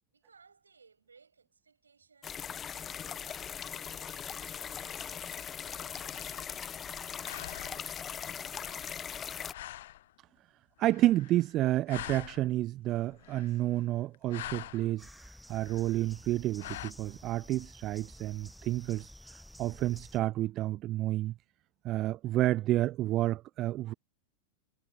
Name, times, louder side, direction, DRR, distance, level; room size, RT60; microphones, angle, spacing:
voice 1, 0.1-2.5 2.7-7.0, right 5 dB, 75° right, 7.1 m, -63 dB
sound 1, 2.2-9.5, left 8 dB, 25° left, 0.9 m, -40 dB
sound 2, 6.0-7.0 7.2-8.0 8.6-9.2 9.5-10.1 10.8-11.6 11.9-12.6 13.1-13.8 14.1-14.9 15.5-16.1 16.6-16.9, left 14 dB, 55° left, 1.0 m, -45 dB
voice 2, 10.8-21.3 21.8-23.9, right 15 dB, 35° right, 0.7 m, -30 dB
sound 3, 15.0-20.2, equal, ahead, 1.2 m, -52 dB
figure-of-eight pair, 90°, 0 cm